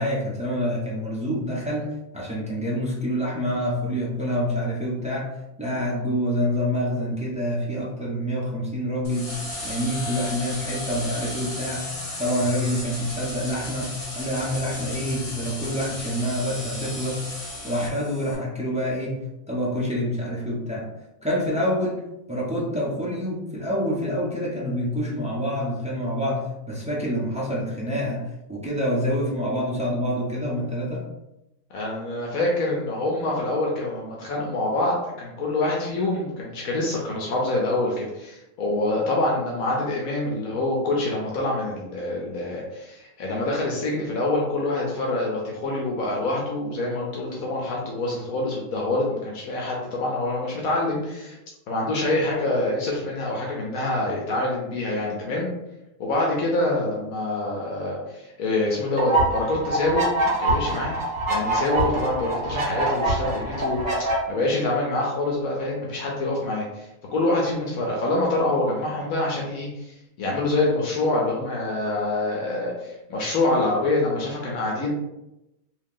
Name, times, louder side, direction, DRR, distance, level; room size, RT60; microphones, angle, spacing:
voice 1, 0.0-5.3 5.6-9.3 9.6-11.9 12.2-17.2 17.6-19.2 19.5-20.9 21.2-22.0 22.3-28.2 28.5-31.0, equal, 10° right, -5 dB, 0.4 m, -27 dB
sound 1, 9.0-18.3, left 1 dB, 50° left, 1.5 m, -34 dB
voice 2, 31.7-51.4 51.7-55.5 56.0-60.1 60.4-60.9 61.3-74.9, left 2 dB, 75° left, -2 dB, 1.2 m, -26 dB
sound 2, 59.0-64.2, right 2 dB, 30° right, 1.2 m, -24 dB
2.9 x 2.8 x 3.7 m, 0.91 s
omnidirectional pair, 1.5 m